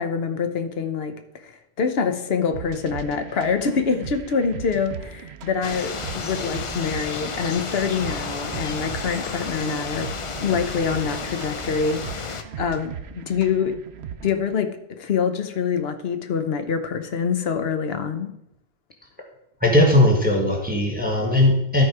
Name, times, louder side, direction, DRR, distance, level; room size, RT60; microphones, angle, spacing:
voice 1, 0.0-10.1 10.4-13.7 14.2-18.3, left 6 dB, 60° left, 8 dB, 1.0 m, -25 dB
sound 1, 2.5-14.5, right 8 dB, 65° right, 0.8 m, -38 dB
sound 2, 5.6-12.4, left 4 dB, 40° left, 0.5 m, -32 dB
voice 2, 19.6-21.8, left 1 dB, 10° right, 0 dB, 1.5 m, -18 dB
12.5 x 4.7 x 4.8 m, 0.81 s
omnidirectional pair, 1.2 m